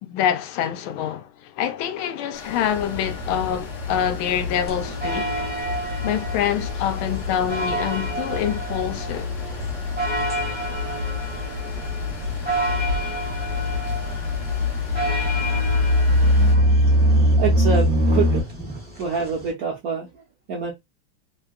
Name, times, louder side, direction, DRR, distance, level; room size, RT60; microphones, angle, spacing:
voice 1, 0.0-5.5 6.0-9.3, left 9 dB, 80° left, 1.4 m, -26 dB
sound 1, 2.3-16.6, left 3 dB, 60° left, 0.8 m, -40 dB
sound 2, 2.7-18.4, left 1 dB, 50° right, 1.2 m, -24 dB
sound 3, 4.7-19.5, right 1 dB, 10° right, 0.6 m, -31 dB
voice 2, 10.5-10.8 13.9-14.1 17.4-18.5 19.0-20.7, right 5 dB, 70° right, 0.9 m, -27 dB
3.4 x 2.2 x 2.3 m
omnidirectional pair, 2.3 m